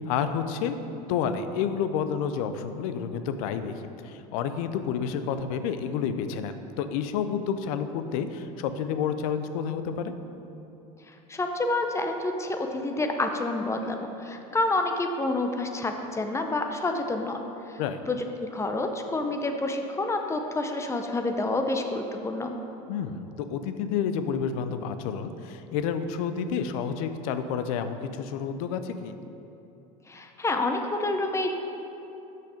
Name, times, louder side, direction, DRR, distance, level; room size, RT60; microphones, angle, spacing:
voice 1, 0.0-10.1 17.8-18.0 22.9-29.2, left 7 dB, 75° left, 10 dB, 0.5 m, -30 dB
voice 2, 11.1-17.8 18.1-22.5 30.1-31.5, left 2 dB, 15° left, 5 dB, 0.6 m, -28 dB
6.0 x 5.9 x 5.0 m, 3.0 s
supercardioid pair, 105°, 19 cm